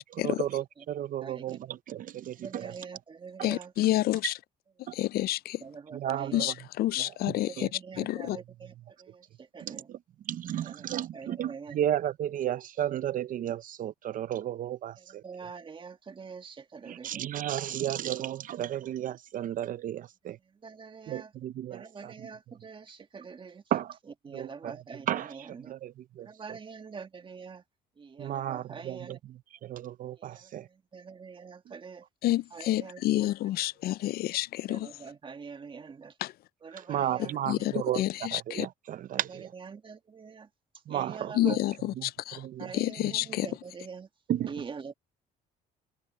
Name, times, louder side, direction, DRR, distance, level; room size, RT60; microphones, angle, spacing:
voice 1, 0.0-2.9 3.4-3.5 4.2-4.3 4.9-5.0 5.9-6.5 7.0-7.1 7.6-7.7 9.6-10.0 10.2-15.2 16.9-20.4 21.1-22.3 23.7-24.0 24.3-26.6 28.2-30.7 36.7-39.5 40.9-41.6 42.0-43.1 44.3-44.6, right 11 dB, 55° right, 0.6 m, -34 dB
voice 2, 2.4-3.7 5.6-6.5 7.5-8.7 9.0-9.8 11.1-11.8 15.2-17.3 20.6-21.3 21.7-23.6 24.3-25.7 26.3-27.6 28.0-29.2 30.3-30.5 30.9-32.0 32.5-33.3 34.7-36.1 36.6-37.3 37.6-37.7 39.7-40.5 40.9-41.6 42.6-44.1 44.5-44.9, right 5 dB, 30° right, 1.7 m, -44 dB
voice 3, 3.4-4.3 4.9-5.6 6.3-8.4 32.2-34.9 36.2-36.3 37.5-38.7 41.3-43.5, left 15 dB, 65° left, 0.4 m, -29 dB
cardioid pair, 110°, 17 cm